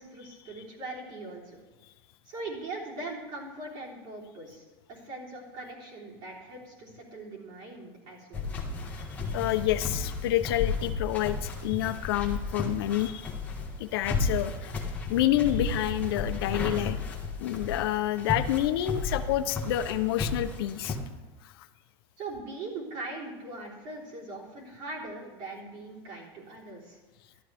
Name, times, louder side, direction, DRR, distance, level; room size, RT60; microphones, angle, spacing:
voice 1, 0.0-1.6 2.3-4.6 4.9-8.5 22.2-27.0, right 2 dB, 45° right, -4 dB, 3.7 m, -41 dB
sound 1, 8.3-21.0, left 3 dB, 15° left, 1.3 m, -33 dB
voice 2, 9.3-13.3 13.8-14.7 15.1-17.0 17.4-21.0, left 13 dB, 80° left, 11 dB, 0.7 m, -28 dB
13.0 x 12.0 x 3.5 m, 1.2 s
supercardioid pair, 175°, 12 cm